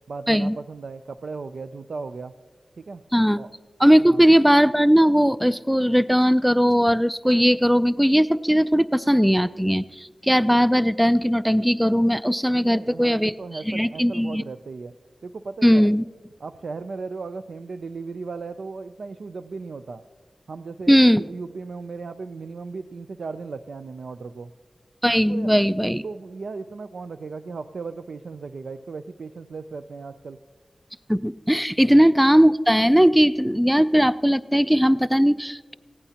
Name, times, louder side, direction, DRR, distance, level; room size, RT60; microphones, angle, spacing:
voice 1, 0.1-2.3 2.7-3.0 3.4-3.5 4.0-4.2 12.6-14.9 15.2-15.9 16.4-20.0 20.5-24.5 25.3-25.5 26.0-30.4 31.8-32.0, right 4 dB, 80° right, 9 dB, 0.4 m, -36 dB
voice 2, 3.8-13.3 13.7-14.4 15.6-16.0 20.9-21.2 25.0-26.0 31.1-35.7, equal, 5° right, 15 dB, 0.3 m, -18 dB
19.5 x 16.0 x 2.9 m, 1.5 s
wide cardioid pair, 80°, 0 cm